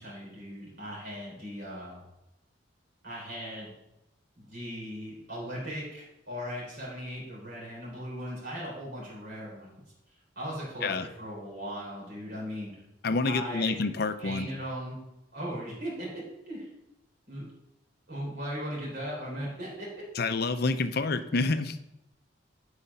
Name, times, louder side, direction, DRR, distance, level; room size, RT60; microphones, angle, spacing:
voice 1, 0.0-2.0 3.0-3.7 4.4-9.8 10.4-12.7 13.2-13.8 14.2-15.0 15.3-16.7 17.3-17.5 18.1-19.9, equal, 55° right, -5 dB, 3.8 m, -38 dB
voice 2, 13.0-14.5 20.2-21.8, left 3 dB, 50° left, 11 dB, 0.6 m, -28 dB
11.5 x 4.9 x 5.5 m, 0.89 s
head